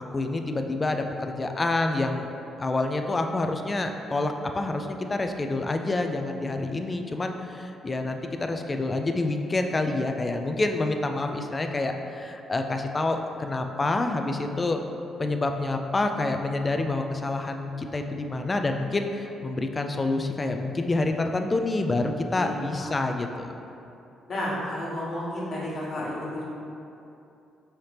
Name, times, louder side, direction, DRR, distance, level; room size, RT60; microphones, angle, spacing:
voice 1, 0.0-2.3 2.6-14.8 15.2-23.5, left 2 dB, 25° left, 5 dB, 0.3 m, -27 dB
voice 2, 24.3-26.4, left 1 dB, 50° left, -6 dB, 1.3 m, -31 dB
5.6 x 2.8 x 3.3 m, 2.8 s
cardioid pair, 90°, 0 cm